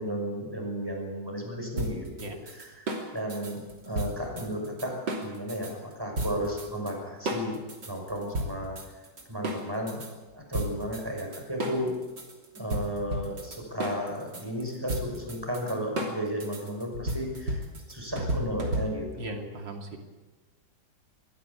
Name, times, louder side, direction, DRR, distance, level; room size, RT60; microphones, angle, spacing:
voice 1, 0.0-2.9 3.1-8.8 9.3-10.0 10.3-12.0 12.5-17.6 17.9-19.5, equal, 10° right, 1 dB, 6.0 m, -34 dB
sound 1, 1.8-5.7 6.2-6.9 7.3-10.1 10.5-19.2, right 1 dB, 70° right, 3.7 m, -33 dB
voice 2, 19.2-20.0, right 2 dB, 90° right, 4 dB, 3.4 m, -38 dB
22.5 x 15.5 x 8.4 m, 1.2 s
omnidirectional pair, 2.0 m